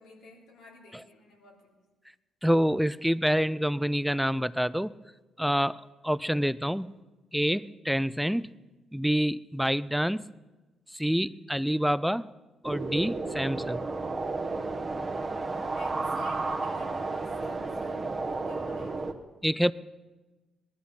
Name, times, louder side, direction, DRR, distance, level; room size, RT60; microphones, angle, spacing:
voice 1, 0.0-1.8 15.7-19.1, left 3 dB, 85° left, -1 dB, 3.4 m, -51 dB
voice 2, 2.4-4.9 5.4-6.9 7.3-8.5 8.9-10.2 10.9-12.3 12.6-13.8 19.4-19.7, equal, ahead, 17 dB, 0.4 m, -27 dB
sound 1, 12.6-19.1, right 3 dB, 25° right, 1.3 m, -32 dB
19.5 x 13.0 x 5.6 m, 1.2 s
cardioid pair, 90°, 0 cm